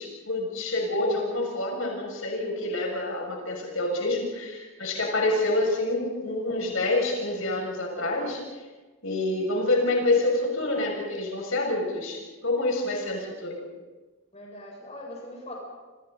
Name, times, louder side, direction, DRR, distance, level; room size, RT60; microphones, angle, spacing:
voice 1, 0.0-8.4 9.0-13.6, left 2 dB, 75° left, 0 dB, 6.8 m, -27 dB
voice 2, 11.9-12.3 14.3-15.5, left 1 dB, 30° left, -2 dB, 7.7 m, -42 dB
30.0 x 27.0 x 4.1 m, 1.3 s
head